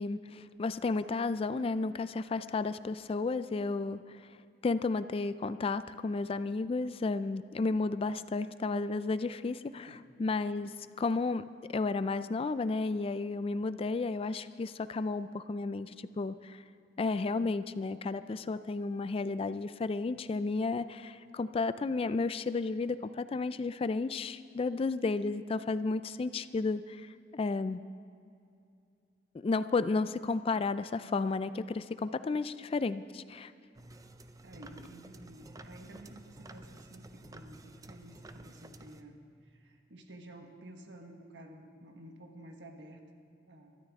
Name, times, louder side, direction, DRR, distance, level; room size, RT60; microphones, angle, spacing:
voice 1, 0.0-4.2 4.6-16.6 17.0-27.8 29.4-33.5, left 3 dB, 30° left, 13 dB, 0.3 m, -33 dB
sound 1, 33.7-39.0, right 1 dB, 20° right, 0.5 m, -51 dB
voice 2, 34.4-43.0 43.5-43.7, right 1 dB, 85° right, 3 dB, 1.5 m, -52 dB
23.5 x 13.0 x 3.6 m, 2.5 s
head